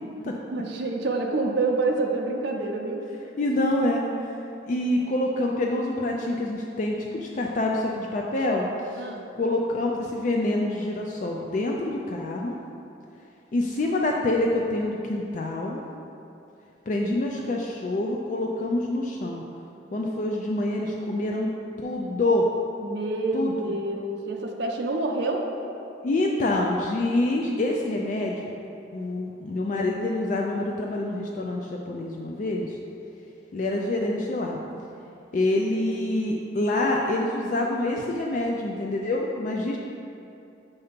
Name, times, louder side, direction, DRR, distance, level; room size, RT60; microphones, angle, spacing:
voice 1, 0.5-3.3 9.0-9.3 22.8-25.5, right 2 dB, 60° right, 0 dB, 0.5 m, -27 dB
voice 2, 3.4-4.3 4.7-8.7 8.9-9.0 9.4-12.6 13.5-15.8 16.9-19.4 19.9-21.5 21.8-22.5 23.3-23.5 26.0-28.5 28.9-32.7 33.5-34.6 35.3-39.8, left 2 dB, 40° left, 0 dB, 0.3 m, -26 dB
6.8 x 2.8 x 5.0 m, 2.7 s
head